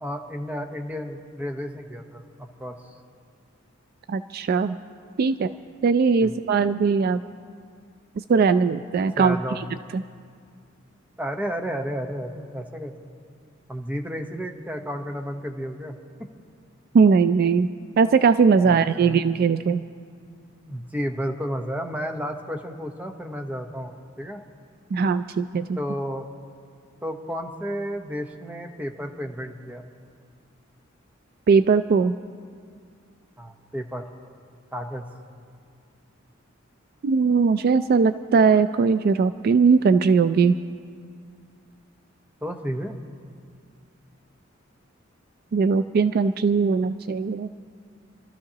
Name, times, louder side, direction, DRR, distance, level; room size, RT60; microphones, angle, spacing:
voice 1, 0.0-2.7 6.2-6.3 9.2-9.6 11.2-13.1 13.7-15.9 16.2-16.3 18.6-19.2 20.7-24.4 25.8-26.3 27.0-29.8 33.4-34.0 34.7-35.0 42.4-43.0, equal, 10° right, 4 dB, 0.9 m, -32 dB
voice 2, 4.1-4.8 5.2-5.5 5.8-7.2 8.3-9.4 9.9-10.0 16.9-17.7 18.0-19.8 24.9-25.6 31.5-32.2 37.0-40.6 45.5-47.5, right 5 dB, 50° right, 11 dB, 0.3 m, -19 dB
28.5 x 13.5 x 2.9 m, 2.2 s
head